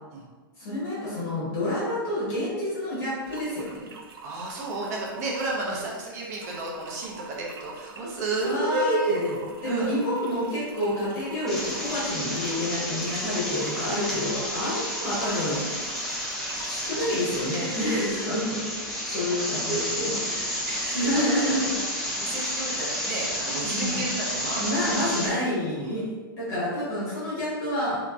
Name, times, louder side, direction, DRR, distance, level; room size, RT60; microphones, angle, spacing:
voice 1, 0.6-3.8 8.4-9.4 9.6-15.6 16.7-18.6 19.1-20.6 20.9-21.6 23.6-24.0 24.5-28.0, left 1 dB, 30° left, -8 dB, 0.8 m, -28 dB
sound 1, 3.2-17.6, right 4 dB, 80° right, 0.5 m, -45 dB
voice 2, 4.2-9.2 9.6-9.9 16.9-17.1 18.3-18.5 19.2-19.6 20.4-21.9 22.2-25.3 25.8-26.0, right 2 dB, 45° right, -3 dB, 0.7 m, -32 dB
sound 2, 11.5-25.3, equal, 5° left, 0.3 m, -31 dB
2.9 x 2.5 x 2.3 m, 1.4 s
supercardioid pair, 165°, 12 cm